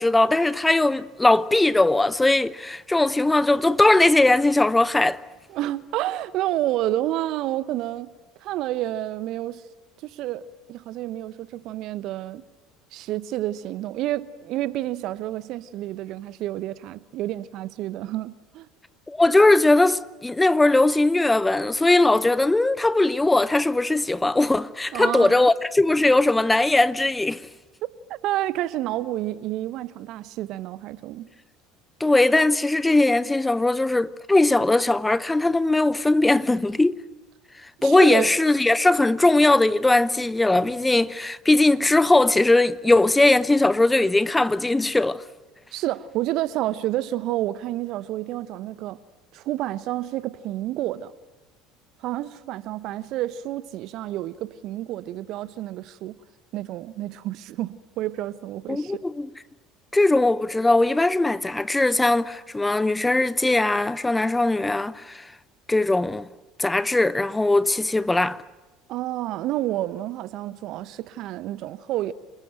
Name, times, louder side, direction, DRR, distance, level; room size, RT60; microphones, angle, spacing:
voice 1, 0.0-5.2 19.1-27.4 32.0-37.0 37.8-45.2 58.7-59.3 59.9-65.2 65.7-66.3 66.6-68.4, left 2 dB, 10° left, 0.9 m, -20 dB
voice 2, 5.5-8.1 8.4-9.6 10.0-10.4 10.7-12.4 12.9-18.7 24.9-25.5 28.1-31.3 37.8-38.3 45.7-49.0 49.3-51.1 52.0-56.1 56.5-59.0 68.9-72.1, right 14 dB, 55° right, 0.9 m, -29 dB
28.5 x 20.5 x 9.1 m
figure-of-eight pair, 65°, 0 cm